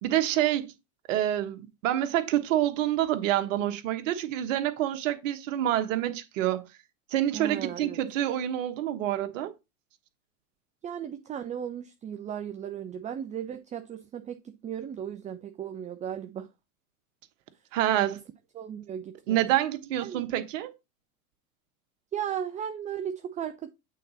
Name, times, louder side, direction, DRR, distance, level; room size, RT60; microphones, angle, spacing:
voice 1, 0.0-0.7 1.1-6.7 7.1-9.5 17.7-18.2 19.3-20.7, right 12 dB, 60° right, 1.3 m, -27 dB
voice 2, 7.3-8.0 10.8-16.5 18.0-18.1 18.5-19.4 20.0-20.2 22.1-23.7, right 9 dB, 15° right, 0.5 m, -36 dB
8.3 x 4.0 x 4.1 m
hypercardioid pair, 100°, 44 cm